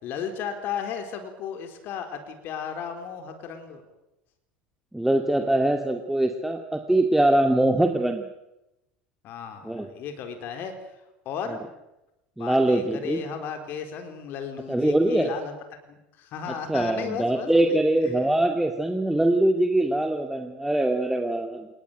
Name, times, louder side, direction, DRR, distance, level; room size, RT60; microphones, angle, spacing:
voice 1, 0.0-3.8 9.2-10.9 11.3-11.6 12.4-15.5 15.9-17.8 18.1-18.3, left 7 dB, 45° left, 7 dB, 4.2 m, -35 dB
voice 2, 4.9-8.3 9.6-9.9 12.4-13.2 14.7-15.3 16.7-21.7, right 1 dB, 5° right, 4 dB, 2.4 m, -23 dB
28.5 x 20.0 x 9.1 m, 0.93 s
figure-of-eight pair, 70°, 5 cm